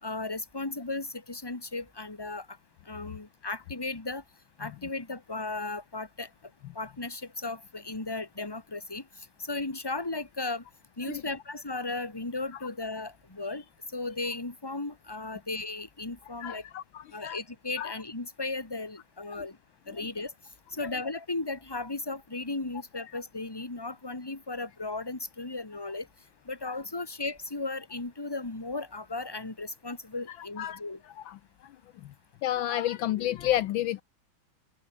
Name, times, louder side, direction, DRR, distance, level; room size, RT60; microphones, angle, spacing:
voice 1, 0.0-2.5 2.9-4.2 4.6-6.3 6.7-9.0 9.4-10.6 11.0-13.6 13.9-16.6 17.1-19.6 19.9-20.3 20.7-26.1 26.5-31.0, left 3 dB, 10° left, 2.2 m, -35 dB
voice 2, 16.4-17.4 17.8-17.9 19.3-19.4 26.7-26.8 30.6-30.8 31.2-31.7 32.0-32.1 32.4-34.0, left 13 dB, 75° left, 1.4 m, -31 dB
open air
omnidirectional pair, 2.3 m